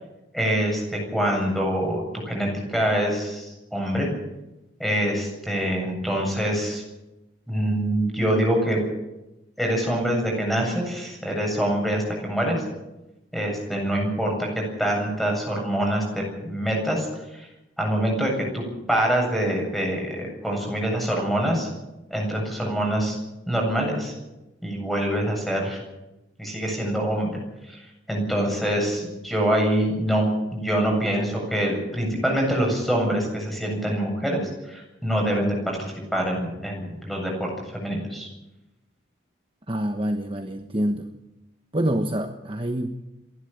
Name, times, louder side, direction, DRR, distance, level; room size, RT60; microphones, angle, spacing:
voice 1, 0.3-4.1 4.8-6.8 7.5-8.8 9.6-12.6 13.3-17.5 17.8-21.7 22.1-23.2 23.5-24.1 24.6-25.8 26.4-27.4 27.7-27.8 28.1-38.3, right 1 dB, ahead, 0 dB, 8.0 m, -25 dB
voice 2, 39.7-41.1 41.7-42.9, right 1 dB, 30° right, 5 dB, 1.2 m, -26 dB
28.5 x 11.5 x 8.8 m, 0.97 s
head